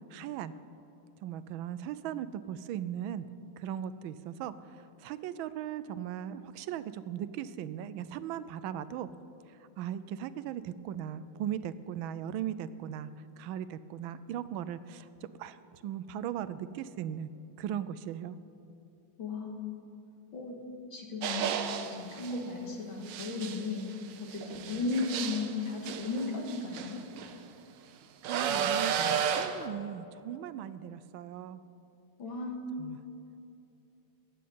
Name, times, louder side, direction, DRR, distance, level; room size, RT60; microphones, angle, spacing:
voice 1, 0.1-0.5 1.2-3.3 3.6-9.1 9.5-13.1 13.4-15.1 15.4-17.3 17.6-18.4 24.5-24.8 27.8-31.6 32.8-33.0, right 10 dB, 85° right, 15 dB, 1.4 m, -38 dB
voice 2, 19.2-19.9 20.3-21.5 21.9-23.8 24.2-27.0 32.2-33.0, left 3 dB, 80° left, 2 dB, 2.4 m, -35 dB
sound 1, 21.2-22.4 23.1-27.3 28.2-29.7, right 7 dB, 70° right, 1.4 m, -33 dB
14.5 x 6.4 x 9.3 m, 2.8 s
omnidirectional pair, 2.1 m